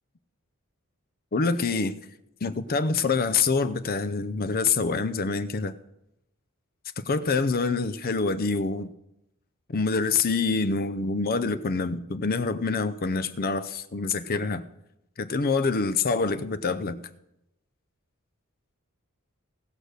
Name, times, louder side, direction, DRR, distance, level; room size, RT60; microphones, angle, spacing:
voice 1, 1.3-2.0 2.4-5.7 7.0-8.9 9.7-14.6 15.2-17.0, left 4 dB, 45° left, 0.6 m, -26 dB
17.5 x 6.6 x 6.4 m
head